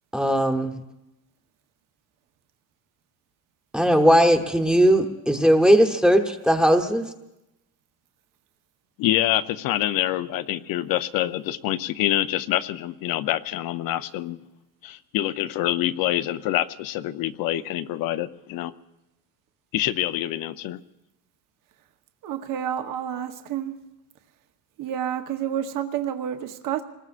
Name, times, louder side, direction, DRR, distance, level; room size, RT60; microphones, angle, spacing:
voice 1, 0.1-0.8 3.7-7.1, equal, ahead, 4 dB, 1.0 m, -18 dB
voice 2, 9.0-14.4 14.8-18.7 19.7-20.8, left 13 dB, 70° left, 12 dB, 0.7 m, -26 dB
voice 3, 22.2-23.7 24.8-26.8, right 9 dB, 60° right, 6 dB, 1.1 m, -29 dB
28.5 x 20.0 x 2.5 m, 0.91 s
cardioid pair, 140°, 36 cm